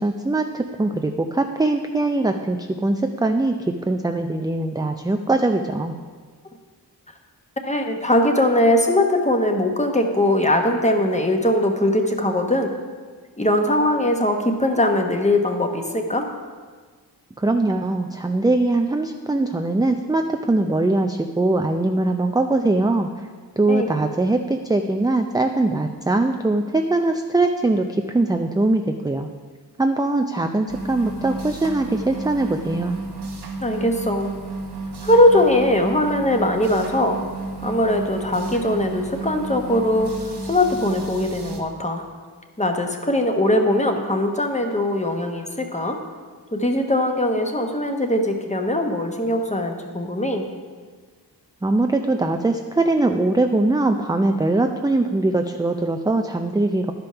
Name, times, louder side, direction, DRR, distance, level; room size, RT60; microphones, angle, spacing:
voice 1, 0.0-3.6 3.8-5.9 17.4-23.1 23.6-29.3 29.8-33.0 51.6-56.9, right 2 dB, 10° right, 5 dB, 0.4 m, -21 dB
voice 2, 7.6-12.7 13.4-16.3 23.7-23.9 33.6-34.3 35.0-37.2 37.6-42.0 42.6-46.0 46.5-50.5, left 1 dB, 15° left, 4 dB, 1.1 m, -20 dB
sound 1, 30.7-41.6, right 3 dB, 80° right, 1.2 m, -32 dB
11.5 x 5.3 x 5.7 m, 1.5 s
wide cardioid pair, 80°, 39 cm